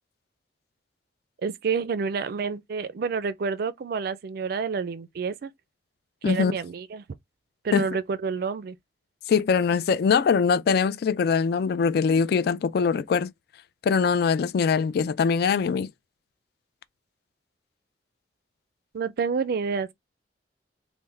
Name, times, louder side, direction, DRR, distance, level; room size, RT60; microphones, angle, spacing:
voice 1, 1.4-5.5 6.2-7.0 7.6-8.8 18.9-19.9, right 5 dB, 60° right, 0.4 m, -29 dB
voice 2, 9.3-13.3 13.8-15.9, left 6 dB, 60° left, 0.3 m, -22 dB
3.4 x 2.1 x 3.1 m
head